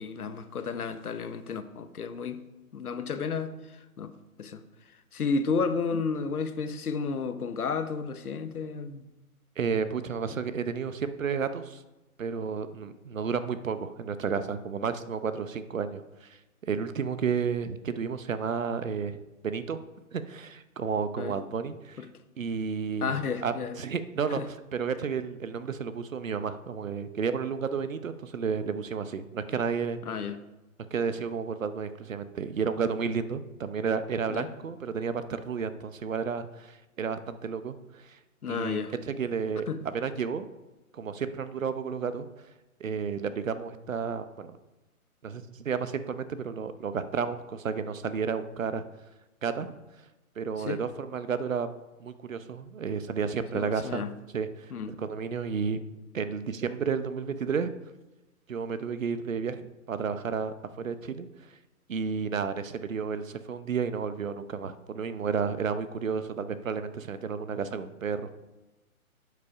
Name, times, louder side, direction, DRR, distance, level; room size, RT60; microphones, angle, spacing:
voice 1, 0.0-2.4 2.7-3.5 4.0-4.1 4.4-4.6 5.1-9.1 21.2-21.4 22.0-22.1 23.0-23.8 24.3-24.5 30.0-30.4 34.3-34.5 38.4-38.9 39.7-39.8 50.6-50.8 53.5-54.1 54.7-55.0, left 5 dB, 85° left, 1.0 m, -32 dB
voice 2, 9.6-11.8 12.2-16.4 16.7-19.8 20.1-22.0 22.4-23.1 23.4-30.0 30.9-38.2 38.5-38.8 39.1-40.5 40.9-42.3 42.8-44.6 45.2-48.8 49.4-49.7 50.4-51.7 52.0-54.1 54.3-55.8 56.1-57.7 58.5-59.6 59.9-61.3 61.9-68.3, right 6 dB, 65° right, 0.8 m, -32 dB
8.3 x 7.0 x 4.8 m
hypercardioid pair, 180°, 44 cm